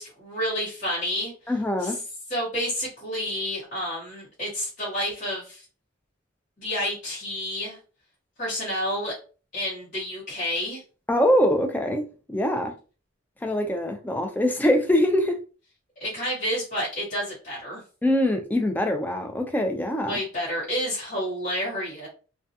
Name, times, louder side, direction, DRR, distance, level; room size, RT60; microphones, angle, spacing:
voice 1, 0.0-1.3 1.8-2.0 2.3-5.6 6.6-7.8 8.4-9.1 9.5-10.8 16.0-17.8 20.1-22.1, equal, 40° left, 1.1 m, -29 dB
voice 2, 1.5-2.0 11.1-12.7 13.4-15.4 18.0-20.2, left 1 dB, 10° left, 0.3 m, -23 dB
2.2 x 2.2 x 2.7 m
head